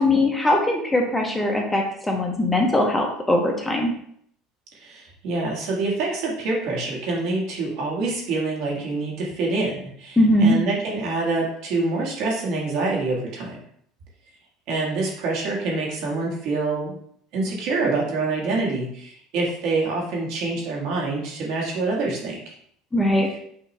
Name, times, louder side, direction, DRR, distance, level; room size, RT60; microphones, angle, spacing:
voice 1, 0.0-3.9 10.2-10.6 22.9-23.3, left 1 dB, 10° left, 1 dB, 0.6 m, -20 dB
voice 2, 4.7-13.6 14.7-17.0 17.3-22.5, right 3 dB, 65° right, -3 dB, 1.5 m, -26 dB
5.5 x 2.6 x 3.2 m, 0.67 s
cardioid pair, 135°, 0 cm